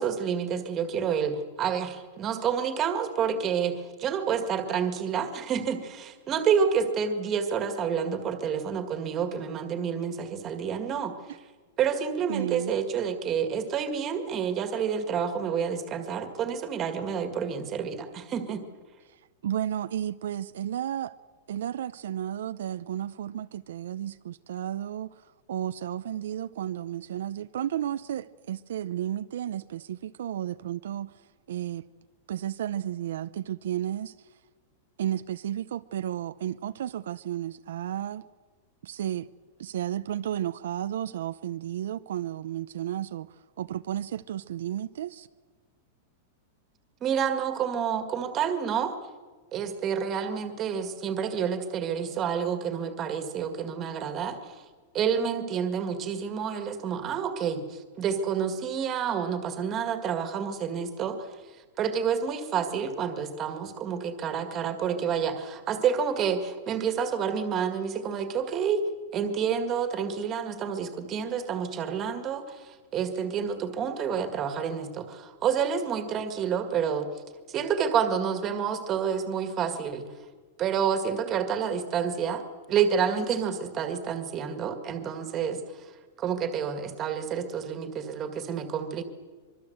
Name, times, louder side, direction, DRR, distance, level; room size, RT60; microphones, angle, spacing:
voice 1, 0.0-11.1 11.8-18.6 47.0-48.9 49.5-54.5 54.9-61.3 61.8-68.8 69.1-77.1 77.5-80.1 80.6-82.4 82.7-85.6 86.2-89.0, right 7 dB, 20° right, 8 dB, 1.9 m, -29 dB
voice 2, 12.3-12.7 19.1-21.1 21.5-31.2 31.5-31.8 32.3-34.3 35.0-38.2 38.8-39.3 39.6-45.3, right 11 dB, 75° right, 12 dB, 0.7 m, -33 dB
24.5 x 23.0 x 8.0 m, 1.4 s
supercardioid pair, 180°, 0 cm